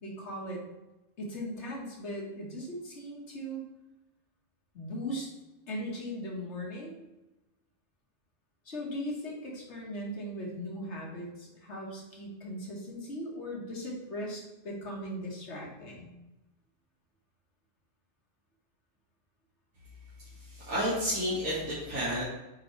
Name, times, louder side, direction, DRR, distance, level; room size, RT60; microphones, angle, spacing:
voice 1, 0.0-0.6 1.2-3.6 4.7-5.3 5.7-7.0 8.7-16.1, equal, 75° left, -2 dB, 1.8 m, -38 dB
voice 2, 20.4-22.2, equal, 90° right, -9 dB, 2.2 m, -31 dB
8.4 x 3.9 x 3.2 m, 0.98 s
omnidirectional pair, 1.2 m